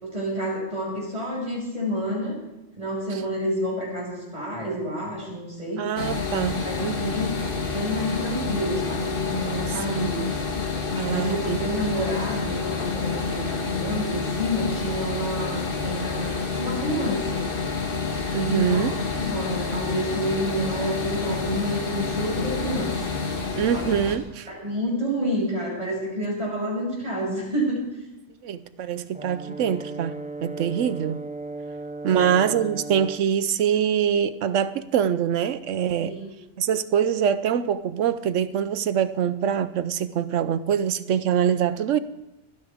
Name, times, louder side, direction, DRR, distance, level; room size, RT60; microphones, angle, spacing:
voice 1, 0.0-2.4 2.8-5.9 6.6-6.8 7.1-10.2 11.1-17.5 18.4-18.9 19.2-22.9 23.7-23.8 24.5-28.0 32.1-32.3 36.0-36.3, equal, 30° right, -3 dB, 6.1 m, -29 dB
voice 2, 5.8-7.1 9.7-10.1 11.0-11.6 18.3-18.9 23.6-24.5 28.4-31.2 32.0-36.1 36.6-42.0, right 8 dB, 90° right, 14 dB, 1.1 m, -24 dB
sound 1, 6.0-24.2, left 4 dB, 50° left, 1.7 m, -28 dB
Brass instrument, 29.1-33.3, right 2 dB, 10° right, 0.3 m, -36 dB
27.0 x 9.8 x 3.5 m, 0.96 s
omnidirectional pair, 1.2 m